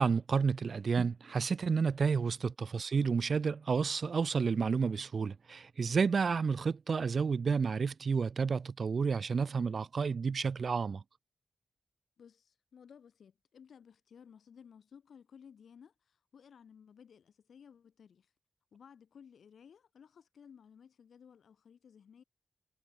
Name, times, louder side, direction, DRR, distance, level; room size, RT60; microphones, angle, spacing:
voice 1, 0.0-11.0, right 5 dB, 55° right, 0.4 m, -30 dB
voice 2, 12.2-18.3 18.7-22.2, left 7 dB, 85° left, 6.5 m, -57 dB
wide cardioid pair, 125°, 0 cm